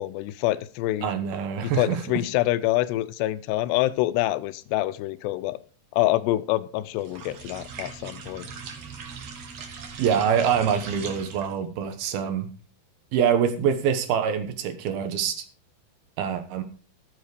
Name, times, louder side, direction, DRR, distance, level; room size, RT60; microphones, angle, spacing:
voice 1, 0.0-1.1 1.6-5.6 5.9-8.5, left 16 dB, 85° left, 15 dB, 2.8 m, -26 dB
voice 2, 1.0-2.2 10.0-12.5 13.1-15.4 16.2-16.6, right 8 dB, 70° right, 9 dB, 2.9 m, -25 dB
sound 1, 7.0-11.6, right 5 dB, 50° right, 2.1 m, -40 dB
14.0 x 8.4 x 4.9 m, 0.39 s
omnidirectional pair, 4.9 m